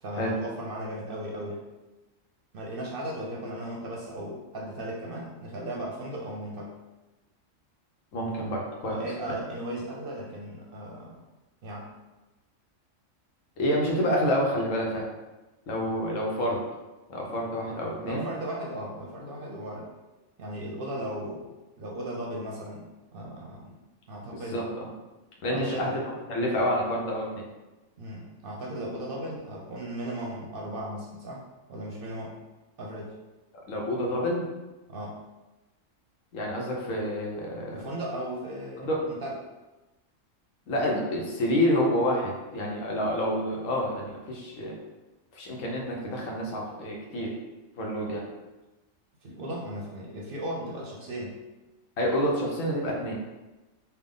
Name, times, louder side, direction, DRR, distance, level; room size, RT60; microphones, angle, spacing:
voice 1, 0.0-1.6 2.5-6.7 8.8-11.2 11.6-11.9 18.0-19.9 20.4-23.8 24.1-24.6 25.5-25.9 28.0-31.4 31.7-32.4 32.8-33.1 34.9-35.2 37.7-39.4 49.2-51.4, right 1 dB, 60° right, -2 dB, 0.6 m, -36 dB
voice 2, 8.1-9.0 9.3-9.4 13.6-15.1 15.7-16.6 17.1-18.2 24.3-24.9 25.4-26.0 26.3-27.4 33.7-34.4 36.3-37.8 38.8-39.0 40.7-44.8 45.3-47.3 47.8-48.2 52.0-53.2, equal, 90° left, -1 dB, 1.1 m, -28 dB
3.4 x 2.2 x 3.7 m, 1.1 s
omnidirectional pair, 1.3 m